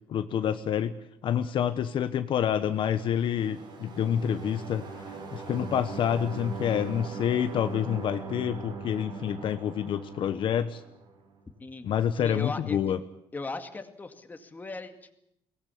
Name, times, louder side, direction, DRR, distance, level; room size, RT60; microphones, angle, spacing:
voice 1, 0.1-0.9 1.2-10.8 11.8-13.0, left 9 dB, 55° left, 10 dB, 1.1 m, -28 dB
sound 1, 2.6-11.3, right 4 dB, 50° right, 4.5 m, -41 dB
voice 2, 12.2-12.9 13.3-15.2, left 3 dB, 15° left, 7 dB, 2.1 m, -38 dB
22.5 x 19.0 x 8.6 m, 0.78 s
cardioid pair, 140°, 10 cm